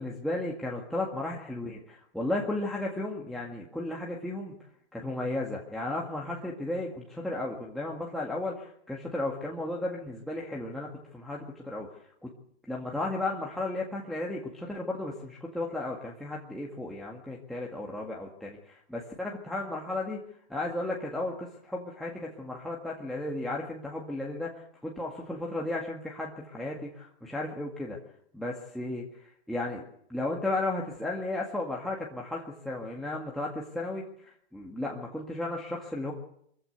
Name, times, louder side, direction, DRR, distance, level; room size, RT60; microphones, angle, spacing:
voice 1, 0.0-4.6 4.9-11.9 12.2-12.3 12.7-20.2 20.5-28.0 28.3-36.1, left 2 dB, ahead, -4 dB, 1.9 m, -34 dB
23.5 x 15.0 x 8.4 m, 0.70 s
hypercardioid pair, 150°, 34 cm